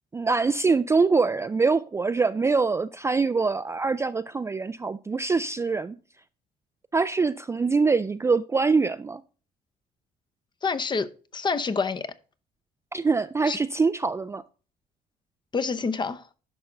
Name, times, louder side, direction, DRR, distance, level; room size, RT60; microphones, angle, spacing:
voice 1, 0.1-6.0 6.9-9.2 12.9-14.4, right 4 dB, 15° right, 0.3 m, -24 dB
voice 2, 10.6-11.1 11.3-12.1 13.5-13.6 15.5-16.2, left 4 dB, 25° left, 0.7 m, -27 dB
11.0 x 5.8 x 3.8 m
cardioid pair, 110°, 17 cm